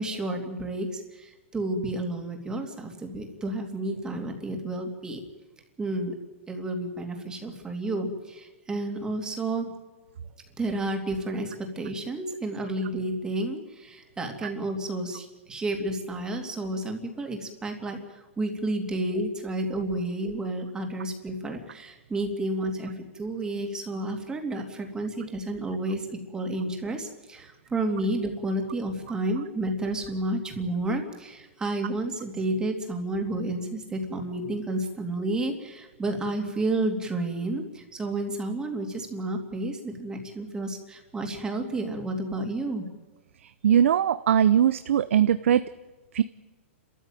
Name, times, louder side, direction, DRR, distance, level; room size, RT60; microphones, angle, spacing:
voice 1, 0.0-5.2 5.8-6.1 6.5-9.6 10.6-42.9, right 2 dB, 10° right, 3 dB, 3.0 m, -31 dB
voice 2, 43.4-45.7 46.1-46.2, right 9 dB, 75° right, 13 dB, 0.7 m, -21 dB
29.5 x 14.0 x 9.3 m, 1.2 s
hypercardioid pair, 150°, 7 cm